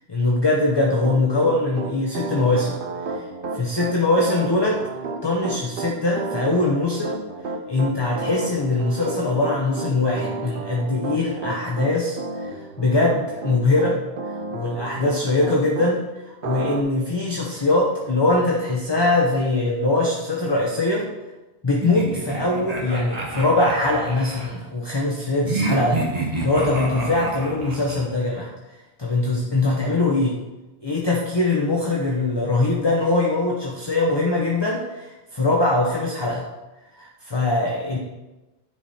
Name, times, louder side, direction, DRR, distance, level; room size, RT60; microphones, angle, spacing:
voice 1, 0.1-2.8 3.1-3.2 3.5-4.8 5.2-7.2 7.7-14.0 14.5-16.0 16.2-21.1 21.6-28.5 29.0-30.4 30.8-36.4 37.0-38.0, left 2 dB, 25° left, -2 dB, 1.0 m, -22 dB
Piano, 0.8-15.9 16.4-16.8, right 3 dB, 60° right, 0.9 m, -31 dB
sound 1, 21.8-24.5 25.5-28.1, right 3 dB, 40° right, 1.4 m, -28 dB
10.0 x 5.0 x 4.3 m, 1.1 s
omnidirectional pair, 1.1 m